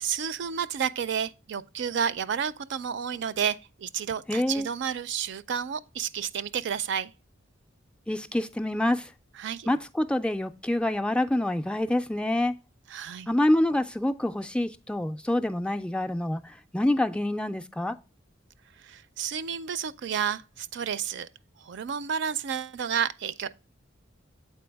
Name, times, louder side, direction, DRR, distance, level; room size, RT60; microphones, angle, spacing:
voice 1, 0.0-7.1 9.4-9.7 12.9-13.3 18.8-21.3 21.6-23.5, right 7 dB, 65° right, 0.4 m, -31 dB
voice 2, 4.3-4.7 8.1-9.1 9.7-12.5 13.3-16.4 16.7-18.0, left 1 dB, 5° left, 0.3 m, -26 dB
7.7 x 4.4 x 3.4 m
head